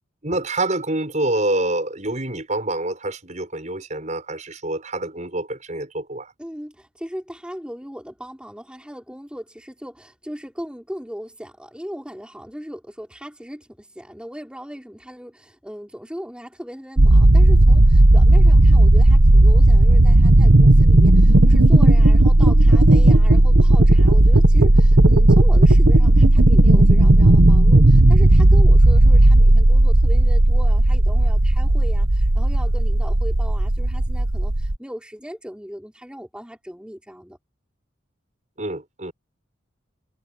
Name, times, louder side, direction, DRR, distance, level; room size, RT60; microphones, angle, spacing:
voice 1, 0.2-6.3 38.6-39.1, right 2 dB, 35° right, 6.6 m, -26 dB
voice 2, 6.4-37.4, equal, 5° right, 4.8 m, -37 dB
sound 1, 17.0-34.8, right 1 dB, 80° right, 1.4 m, -13 dB
head